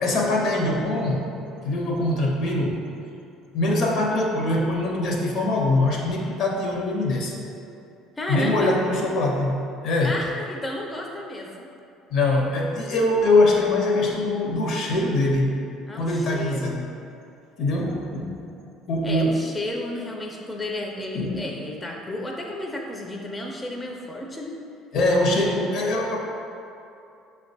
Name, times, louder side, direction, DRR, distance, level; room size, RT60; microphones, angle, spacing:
voice 1, 0.0-1.3 1.6-2.8 3.5-7.4 8.3-10.2 12.1-15.5 15.9-16.8 17.6-18.4 18.9-19.4 21.1-21.4 24.9-26.2, left 2 dB, 65° left, -1 dB, 0.7 m, -23 dB
voice 2, 8.2-8.8 10.0-11.7 15.9-16.7 19.0-24.6, left 1 dB, 20° left, 0 dB, 0.4 m, -32 dB
5.8 x 2.2 x 2.6 m, 2.6 s
hypercardioid pair, 65°, 0 cm